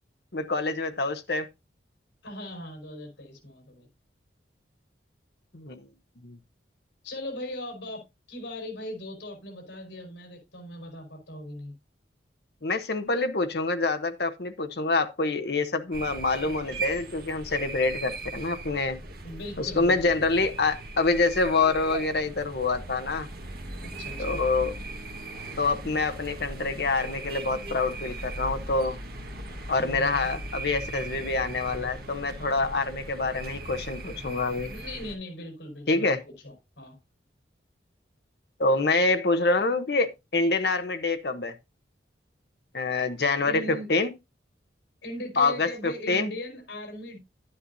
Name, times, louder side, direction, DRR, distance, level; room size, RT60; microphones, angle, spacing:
voice 1, 0.3-1.5 5.5-5.9 6.2-6.4 12.6-19.0 19.6-23.3 24.2-24.7 25.6-29.0 29.7-34.7 35.9-36.2 38.6-41.5 42.7-44.1 45.4-46.3, left 3 dB, 60° left, 1.0 m, -26 dB
voice 2, 2.2-3.9 7.0-11.7 19.2-20.3 23.8-24.4 29.8-30.4 34.7-37.0 43.4-43.9 45.0-47.2, left 1 dB, 75° left, 5.3 m, -39 dB
sound 1, 15.9-35.2, right 2 dB, 55° right, 1.6 m, -38 dB
11.0 x 9.8 x 2.7 m
head